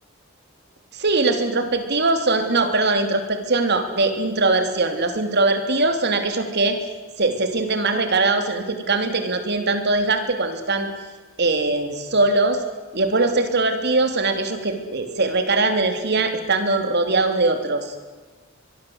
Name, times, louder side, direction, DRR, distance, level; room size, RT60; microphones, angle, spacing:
voice 1, 0.9-6.8 7.2-10.9 11.4-12.6 12.9-18.0, right 3 dB, 55° right, 7 dB, 3.4 m, -21 dB
23.5 x 22.0 x 8.1 m, 1.3 s
head